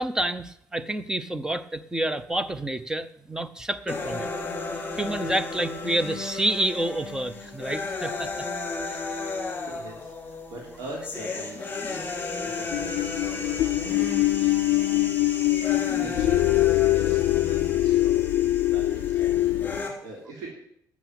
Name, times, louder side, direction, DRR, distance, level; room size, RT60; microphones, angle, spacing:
voice 1, 0.0-4.3 5.0-8.5 8.9-9.0, right 1 dB, 10° right, 14 dB, 0.7 m, -28 dB
sound 1, 3.9-19.9, left 3 dB, 25° left, 3.5 m, -34 dB
voice 2, 9.5-11.7 12.4-14.5 16.0-16.6 16.9-18.2 18.7-20.5, right 2 dB, 90° right, -2 dB, 3.5 m, -42 dB
sound 2, 12.7-19.8, left 16 dB, 90° left, 0.4 m, -23 dB
12.0 x 7.3 x 8.6 m, 0.69 s
cardioid pair, 135°, 6 cm